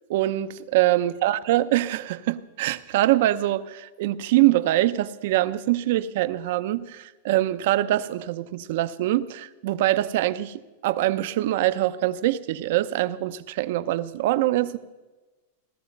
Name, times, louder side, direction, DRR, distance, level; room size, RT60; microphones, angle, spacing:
voice 1, 0.1-14.8, right 15 dB, 60° right, 0.7 m, -24 dB
16.5 x 13.5 x 5.3 m
supercardioid pair, 155°, 0 cm